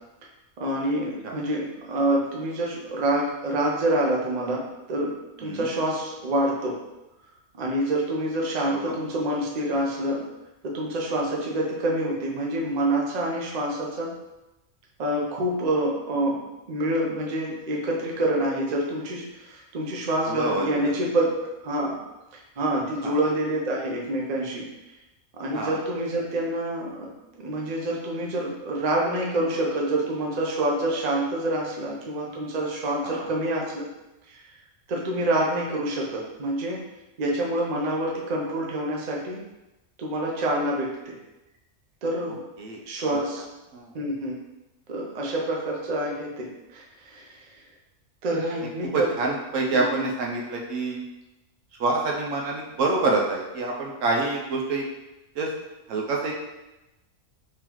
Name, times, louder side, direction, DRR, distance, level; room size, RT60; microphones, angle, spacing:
voice 1, 0.6-4.6 4.9-6.8 7.5-10.2 10.6-14.1 15.0-16.4 16.7-21.2 21.6-22.0 22.3-24.7 25.4-27.1 27.4-33.8 34.3-34.4 34.9-36.9 37.2-39.5 40.0-41.2 42.0-42.4 42.9-43.4 43.9-44.3 44.9-47.5 48.2-49.1 49.7-49.8, right 1 dB, 45° right, -2 dB, 0.6 m, -27 dB
voice 2, 20.3-21.0 23.0-23.2 25.5-25.8 33.0-33.3 42.6-42.8 43.7-43.9 48.9-51.0 51.8-54.8 55.3-55.5 55.9-56.3, right 3 dB, 75° right, 0 dB, 1.0 m, -27 dB
3.8 x 3.1 x 3.0 m, 0.98 s
omnidirectional pair, 1.4 m